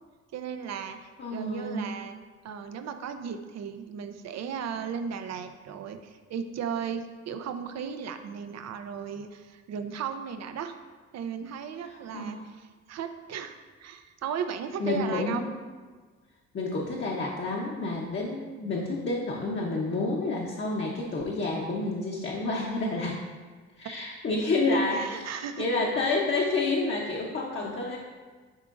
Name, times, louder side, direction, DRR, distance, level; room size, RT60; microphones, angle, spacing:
voice 1, 0.3-2.2 2.4-10.8 11.1-15.5 24.7-25.7, right 7 dB, 60° right, 8 dB, 0.6 m, -36 dB
voice 2, 1.2-1.9 12.1-12.4 14.8-15.5 16.5-23.2 23.8-25.0 25.3-28.0, left 3 dB, 40° left, -3 dB, 0.9 m, -29 dB
10.0 x 3.7 x 2.5 m, 1.5 s
cardioid pair, 90°, 30 cm